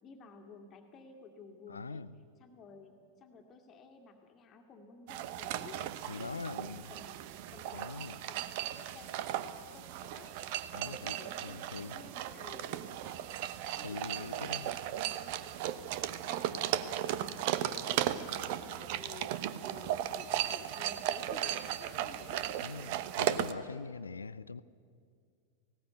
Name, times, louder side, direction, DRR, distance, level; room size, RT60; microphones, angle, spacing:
voice 1, 0.0-2.0 2.4-10.4 10.8-16.9 17.2-22.9, left 4 dB, 30° left, 5 dB, 2.1 m, -54 dB
voice 2, 1.7-2.2 6.1-6.9 7.7-8.2 10.7-11.2 11.4-12.0 13.8-14.8 22.6-24.6, left 4 dB, 75° left, 18 dB, 0.5 m, -43 dB
sound 1, 5.1-23.5, right 12 dB, 50° right, 0.9 m, -36 dB
19.0 x 17.5 x 9.2 m, 2.2 s
figure-of-eight pair, 90°, 0 cm